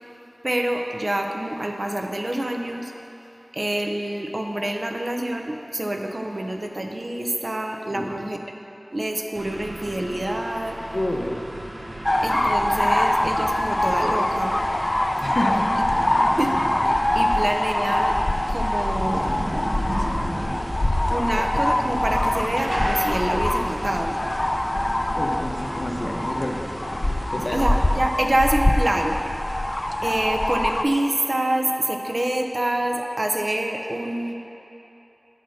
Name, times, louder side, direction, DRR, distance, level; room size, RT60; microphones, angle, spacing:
voice 1, 0.4-2.9 3.5-8.4 8.9-10.8 12.2-14.6 16.4-16.5 16.8-18.2 18.5-19.3 21.1-24.2 27.5-29.2 30.0-34.3, right 1 dB, 55° right, 2 dB, 0.6 m, -26 dB
voice 2, 7.9-8.3 10.9-11.5 15.2-16.3 25.1-26.6 27.3-27.6, left 1 dB, 65° left, 0 dB, 0.8 m, -29 dB
sound 1, 9.3-28.0, right 1 dB, 80° right, 0.9 m, -35 dB
sound 2, 12.0-30.8, left 1 dB, 40° left, 0.3 m, -24 dB
9.0 x 4.2 x 6.2 m, 3.0 s
wide cardioid pair, 50°, 0 cm